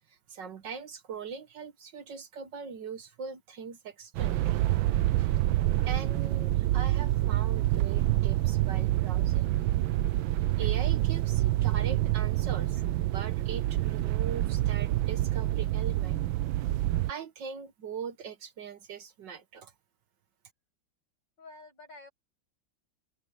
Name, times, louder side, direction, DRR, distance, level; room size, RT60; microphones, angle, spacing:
voice 1, 0.1-4.6 5.2-5.3 5.9-9.5 10.6-16.2 17.1-19.7, right 6 dB, 65° right, 1.9 m, -41 dB
sound 1, 4.2-17.1, right 15 dB, 90° right, 1.4 m, -27 dB
voice 2, 21.4-22.1, left 3 dB, 65° left, 8.7 m, -49 dB
open air
omnidirectional pair, 2.1 m